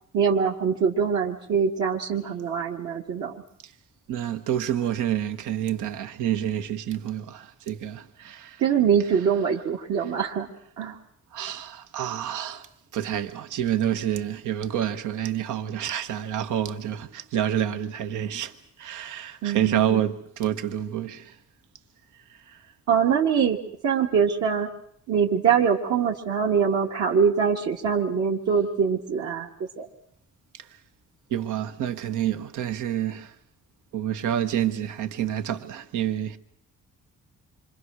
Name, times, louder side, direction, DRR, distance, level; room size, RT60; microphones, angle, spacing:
voice 1, 0.1-3.4 8.6-10.5 10.8-11.0 19.4-20.0 22.9-23.6 23.8-24.7 25.1-29.5 29.8-29.9, right 7 dB, 65° right, 2.0 m, -23 dB
voice 2, 4.1-8.6 11.3-12.7 12.9-21.4 22.5-22.6 30.5-30.7 31.3-33.3 33.9-36.4, right 10 dB, 80° right, 1.4 m, -28 dB
27.5 x 25.0 x 6.3 m
cardioid pair, 90°, 30 cm